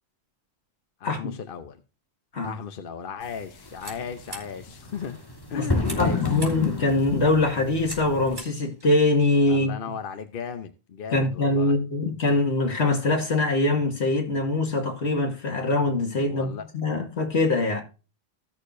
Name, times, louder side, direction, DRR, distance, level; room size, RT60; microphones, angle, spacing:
voice 1, 1.0-1.8 2.4-5.2 5.5-6.2 9.5-11.8 16.3-16.7, left 6 dB, 55° left, 1.0 m, -36 dB
sound 1, 3.2-8.3, left 2 dB, 20° left, 1.4 m, -32 dB
sound 2, 3.3-9.5, right 1 dB, 45° right, 2.7 m, -45 dB
voice 2, 5.6-9.7 11.1-17.8, left 2 dB, 80° left, 2.2 m, -23 dB
15.5 x 6.6 x 2.6 m
omnidirectional pair, 1.1 m